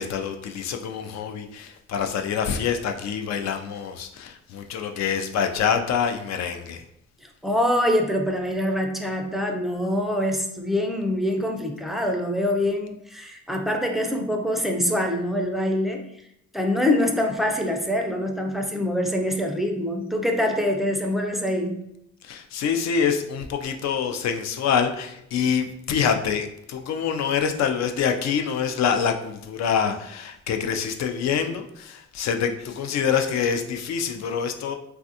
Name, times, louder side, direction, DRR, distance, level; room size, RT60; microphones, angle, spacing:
voice 1, 0.0-6.9 22.2-34.7, left 7 dB, 65° left, 6 dB, 0.4 m, -26 dB
voice 2, 7.2-16.1 16.5-21.8, left 1 dB, ahead, 2 dB, 0.4 m, -25 dB
3.3 x 2.3 x 2.7 m, 0.78 s
cardioid pair, 90°, 30 cm